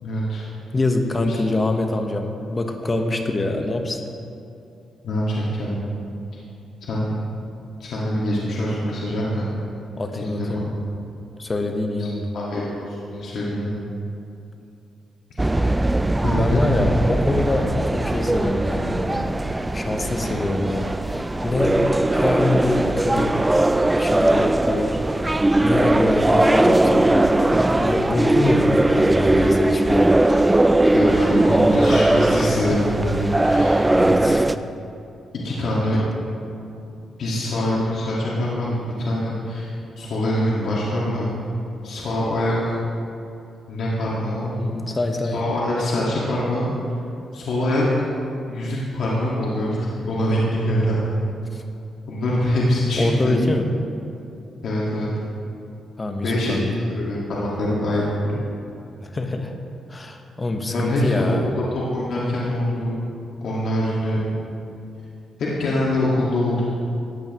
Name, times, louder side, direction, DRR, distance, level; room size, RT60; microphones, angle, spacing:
voice 1, 0.0-0.4 5.0-5.8 6.9-7.1 7.8-9.4 10.1-10.5 12.0-12.1 12.3-13.8 16.2-16.6 30.9-33.8 35.4-36.0 37.2-41.3 41.8-42.7 43.7-44.6 45.3-46.7 47.3-47.8 48.5-49.8 50.0-51.1 52.1-53.4 54.6-55.1 56.2-56.6 56.9-58.4 60.6-62.9 63.4-64.2 65.4-66.6, left 1 dB, 70° left, -6 dB, 1.8 m, -24 dB
voice 2, 0.7-4.0 10.0-10.7 11.4-12.4 16.4-19.3 19.7-21.8 22.1-23.5 23.9-25.0 25.6-30.1 34.0-34.5 44.6-45.4 51.5-51.6 53.0-53.7 56.0-56.7 59.0-59.5 59.9-61.5, left 2 dB, 30° left, 5 dB, 1.0 m, -25 dB
sound 1, 15.4-34.5, right 1 dB, 15° right, 0.3 m, -19 dB
14.5 x 8.9 x 3.0 m, 2.6 s
cardioid pair, 85°, 0 cm